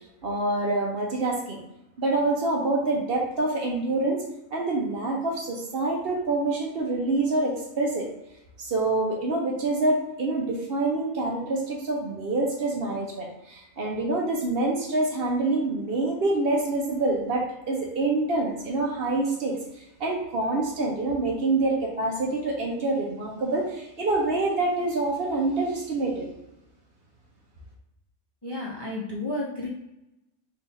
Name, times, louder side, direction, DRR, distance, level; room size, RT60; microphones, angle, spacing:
voice 1, 0.2-1.6 2.0-4.2 4.5-8.1 8.6-26.3, right 2 dB, 55° right, -1 dB, 0.8 m, -26 dB
voice 2, 28.4-29.7, left 1 dB, 30° left, -5 dB, 0.5 m, -32 dB
3.7 x 2.4 x 4.0 m, 0.90 s
omnidirectional pair, 1.3 m